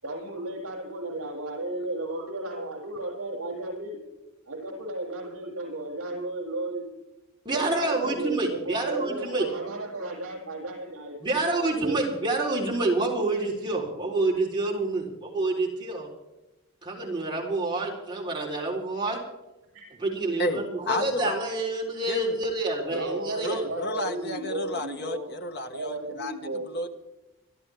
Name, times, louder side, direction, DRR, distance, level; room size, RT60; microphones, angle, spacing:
voice 1, 0.0-4.0 4.5-6.9 7.5-12.0 19.7-19.8 22.9-25.3 25.7-26.7, right 2 dB, 70° right, -1 dB, 6.9 m, -34 dB
voice 2, 7.5-9.5 11.2-16.1 16.8-19.2 20.0-23.7, right 2 dB, 20° right, -3 dB, 3.7 m, -28 dB
voice 3, 20.4-21.4 22.1-22.4 23.3-26.3 26.6-26.9, left 1 dB, 50° left, 6 dB, 1.6 m, -32 dB
26.0 x 12.5 x 3.5 m, 0.99 s
head